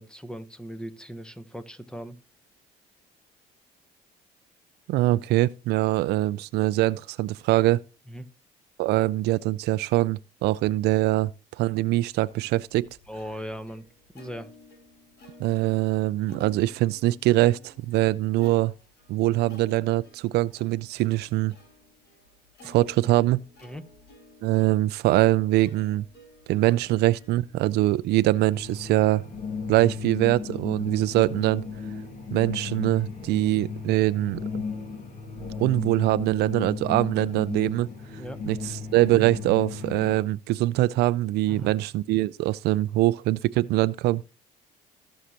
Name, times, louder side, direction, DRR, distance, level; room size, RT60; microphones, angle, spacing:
voice 1, 0.0-2.2 8.1-8.3 13.1-13.8 14.1-14.5 23.6-23.8 38.2-38.4 41.5-41.7, equal, 5° left, 1.0 m, -38 dB
voice 2, 4.9-7.8 8.8-11.3 11.6-12.9 15.4-18.7 19.1-21.5 22.6-23.4 24.4-26.0 26.5-29.2 29.7-31.6 32.3-34.7 35.6-37.9 38.4-44.2, right 17 dB, 80° right, 0.4 m, -23 dB
Plucked string instrument, 12.7-29.0, left 2 dB, 85° left, 4.8 m, -54 dB
sound 1, 28.5-40.2, left 5 dB, 45° left, 2.3 m, -35 dB
18.0 x 6.4 x 2.9 m
cardioid pair, 110°, 17 cm